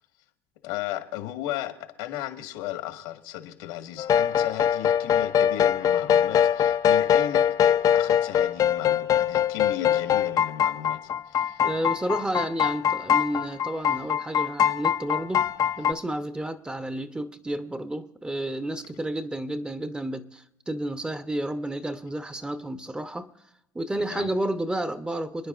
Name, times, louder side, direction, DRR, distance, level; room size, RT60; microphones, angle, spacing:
voice 1, 0.6-11.6 24.0-24.3, left 12 dB, 80° left, 1.7 m, -35 dB
sound 1, 4.0-15.9, left 9 dB, 40° left, 0.5 m, -23 dB
voice 2, 11.6-15.5 15.8-23.3 23.7-25.5, right 1 dB, 10° right, 0.7 m, -31 dB
28.5 x 9.9 x 2.5 m
supercardioid pair, 90°, 10 cm